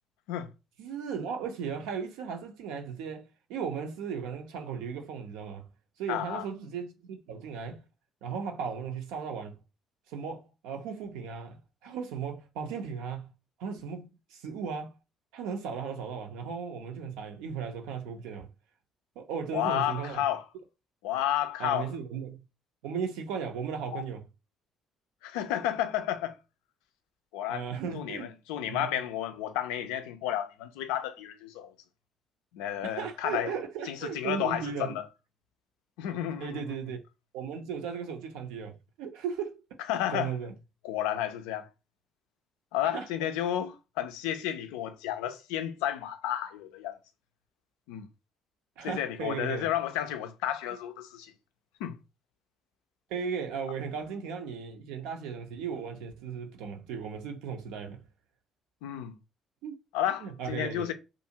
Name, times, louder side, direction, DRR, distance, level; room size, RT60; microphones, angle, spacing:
voice 1, 0.8-5.7 6.0-7.8 8.2-9.6 10.1-13.3 13.6-14.9 15.3-18.5 19.2-20.2 21.6-22.4 22.8-24.2 27.5-28.3 28.7-28.9 32.8-35.0 36.4-37.0 37.3-39.6 40.1-40.5 42.9-43.1 48.8-49.7 53.1-58.0 59.6-59.7 60.2-60.8, right 6 dB, 70° right, 0.5 m, -36 dB
voice 2, 6.1-6.4 19.5-20.4 21.0-21.9 23.9-24.0 25.2-26.3 27.3-27.7 27.9-31.7 32.5-33.5 33.9-35.0 36.0-36.6 39.9-40.3 40.8-41.7 42.7-47.0 47.9-48.1 48.8-51.3 51.8-52.0 58.8-59.2 59.9-60.9, left 11 dB, 70° left, 0.3 m, -32 dB
2.5 x 2.4 x 2.7 m
figure-of-eight pair, 50°, 0 cm